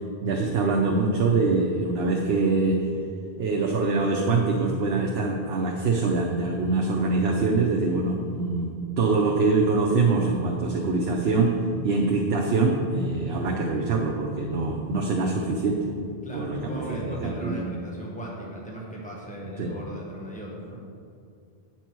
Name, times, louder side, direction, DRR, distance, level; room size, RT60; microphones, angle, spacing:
voice 1, 0.2-2.8 3.4-8.7 9.0-11.5 11.8-15.8 16.3-17.7 19.6-19.7, right 3 dB, 75° right, -1 dB, 1.0 m, -24 dB
voice 2, 16.2-20.8, right 1 dB, 10° left, -3 dB, 1.3 m, -37 dB
9.0 x 6.0 x 4.5 m, 2.3 s
omnidirectional pair, 1.0 m